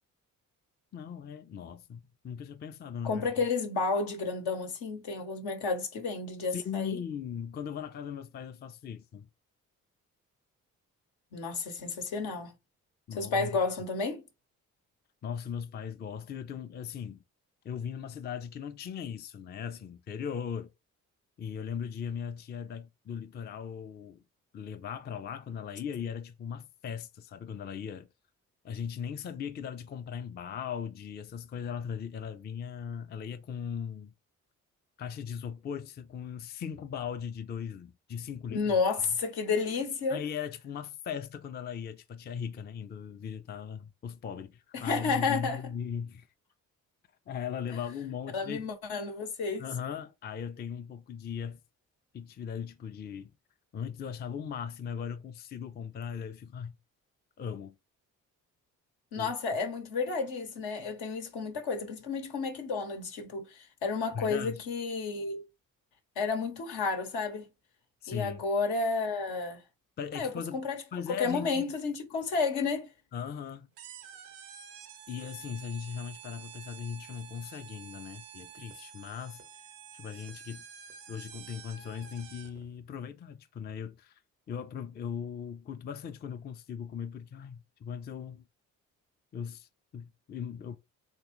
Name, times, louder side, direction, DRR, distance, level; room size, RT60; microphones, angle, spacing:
voice 1, 0.9-3.2 6.5-9.3 13.1-13.6 15.2-17.2 17.6-20.7 21.4-24.2 24.5-28.1 28.6-34.1 35.0-38.8 40.1-46.3 47.3-48.7 49.6-51.6 52.1-53.3 53.7-56.8 57.4-57.7 59.2-59.3 64.1-64.6 68.0-68.4 70.0-70.6 70.9-71.6 73.1-73.7 75.1-79.4 79.9-80.7 81.1-84.2 84.5-88.4 89.3-90.8, left 7 dB, 25° left, 0.4 m, -38 dB
voice 2, 3.0-7.0 11.3-12.5 13.1-14.2 38.5-40.2 44.7-45.6 48.3-49.7 59.1-65.4 66.2-67.5 68.1-69.6 70.1-70.8 71.1-72.9, left 4 dB, 70° left, 0.9 m, -31 dB
sound 1, 73.8-82.7, right 9 dB, 90° right, 0.5 m, -49 dB
3.3 x 2.2 x 3.0 m
hypercardioid pair, 40°, 39 cm